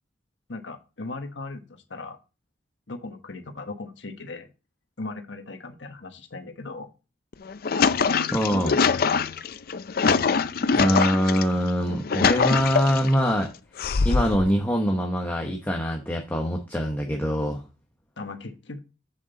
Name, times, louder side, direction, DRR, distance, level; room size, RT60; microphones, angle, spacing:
voice 1, 0.5-2.2 2.9-4.5 5.0-6.9 8.5-9.0 18.2-18.8, left 3 dB, 85° left, 6 dB, 1.3 m, -37 dB
sound 1, 7.3-11.4 11.9-13.1 13.8-14.5, left 5 dB, 55° left, 0.5 m, -23 dB
voice 2, 8.3-8.7 10.7-13.5 14.0-17.6, equal, 10° left, 1 dB, 1.0 m, -24 dB
7.7 x 6.9 x 4.0 m, 0.31 s
head